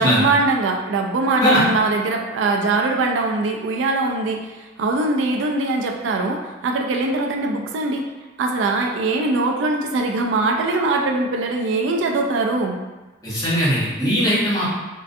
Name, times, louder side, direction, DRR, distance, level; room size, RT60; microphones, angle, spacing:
voice 1, 0.0-8.0 8.4-12.8, right 3 dB, 85° right, 2 dB, 0.3 m, -22 dB
voice 2, 13.2-14.7, equal, 20° left, -10 dB, 0.9 m, -19 dB
2.4 x 2.2 x 2.5 m, 1.2 s
head